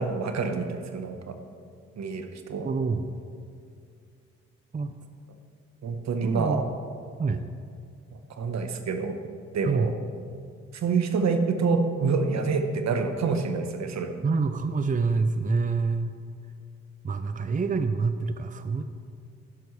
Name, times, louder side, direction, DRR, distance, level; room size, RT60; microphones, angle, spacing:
voice 1, 0.0-1.3 2.0-2.7 5.8-6.7 8.4-9.2 9.5-9.9 10.7-14.1, right 4 dB, 60° right, 7 dB, 1.1 m, -27 dB
voice 2, 2.6-3.1 4.7-4.9 6.2-6.6 7.2-7.4 9.6-9.9 14.2-16.2 17.0-18.8, right 4 dB, 25° right, 9 dB, 0.6 m, -26 dB
12.0 x 10.5 x 3.2 m, 2.3 s
hypercardioid pair, 45°, 30 cm